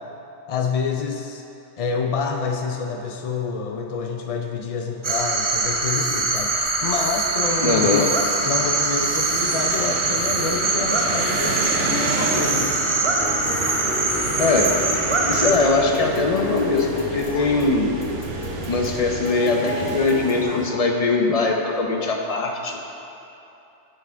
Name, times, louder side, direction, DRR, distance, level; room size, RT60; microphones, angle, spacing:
voice 1, 0.5-1.4 1.8-6.5 6.8-8.1 8.4-12.8, left 5 dB, 75° left, 3 dB, 0.3 m, -27 dB
sound 1, 5.0-15.5, right 3 dB, 30° right, 0.6 m, -23 dB
sound 2, 7.4-20.7, right 4 dB, 75° right, 1.0 m, -31 dB
voice 2, 7.6-8.0 14.4-14.7 15.3-18.0 18.7-22.8, left 3 dB, 35° left, 2 dB, 0.7 m, -21 dB
sound 3, 13.2-20.4, left 2 dB, 55° left, 1.3 m, -32 dB
9.3 x 6.1 x 4.4 m, 2.8 s
omnidirectional pair, 1.3 m